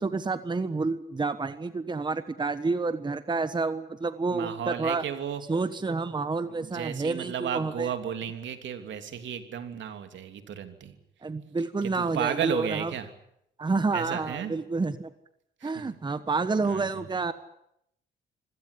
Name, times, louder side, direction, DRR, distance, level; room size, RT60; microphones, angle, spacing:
voice 1, 0.0-5.0 5.5-7.9 11.2-12.9 13.6-15.1 15.6-17.3, right 3 dB, 20° right, 12 dB, 1.3 m, -29 dB
voice 2, 4.3-5.4 6.6-11.0 11.8-13.1 13.9-14.5 15.6-15.9 16.6-17.1, right 8 dB, 70° right, 8 dB, 3.1 m, -34 dB
25.5 x 17.0 x 10.0 m, 0.78 s
cardioid pair, 90°, 20 cm